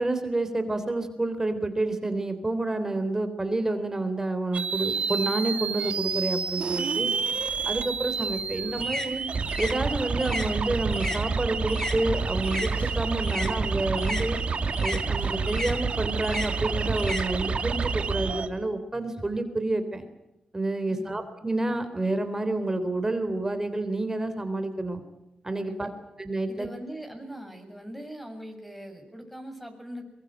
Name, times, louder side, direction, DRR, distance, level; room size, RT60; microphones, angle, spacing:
voice 1, 0.0-7.1 7.7-9.2 9.6-14.4 14.8-20.1 20.5-25.0 25.4-25.9 26.2-26.7, right 2 dB, 20° right, 10 dB, 3.6 m, -29 dB
sound 1, 4.5-18.5, right 5 dB, 55° right, 2.3 m, -29 dB
voice 2, 7.0-7.3 20.9-21.3 25.7-25.9 26.5-30.0, equal, ahead, 5 dB, 7.3 m, -41 dB
sound 2, 8.0-12.7 13.0-17.9, left 2 dB, 25° left, 4.4 m, -36 dB
Engine Crank and Start, 12.1-17.2, left 3 dB, 60° left, 5.8 m, -53 dB
23.0 x 22.5 x 9.1 m, 0.90 s
cardioid pair, 80°, 2 cm